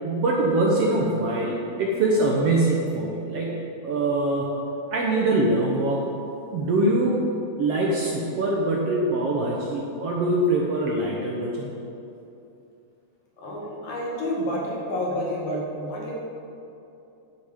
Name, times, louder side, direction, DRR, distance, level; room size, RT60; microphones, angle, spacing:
voice 1, 0.0-4.5 4.9-6.0 6.5-7.2 7.6-11.7, right 2 dB, 65° right, -2 dB, 1.5 m, -23 dB
voice 2, 13.4-16.1, equal, 85° left, -3 dB, 3.8 m, -29 dB
9.6 x 6.7 x 8.2 m, 2.8 s
omnidirectional pair, 3.9 m